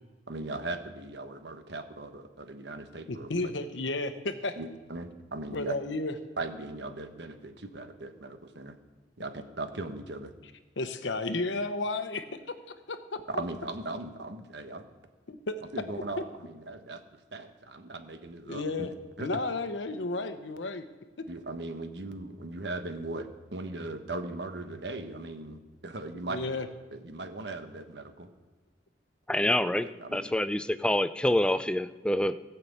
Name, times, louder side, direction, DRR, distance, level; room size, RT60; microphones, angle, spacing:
voice 1, 0.3-3.3 4.6-5.8 6.4-8.8 9.2-10.3 13.3-14.8 15.7-17.0 17.3-18.9 19.2-19.3 21.3-26.5 26.9-28.3 29.8-30.3, right 2 dB, 70° right, 7 dB, 1.2 m, -38 dB
voice 2, 3.1-4.6 5.5-6.1 10.8-13.2 15.3-15.5 16.2-16.3 18.5-18.9 19.2-20.9 21.2-21.3 26.2-26.7, left 2 dB, 85° left, 10 dB, 1.0 m, -33 dB
voice 3, 29.3-32.4, left 1 dB, 5° left, 13 dB, 0.3 m, -27 dB
16.5 x 5.9 x 8.1 m, 1.3 s
head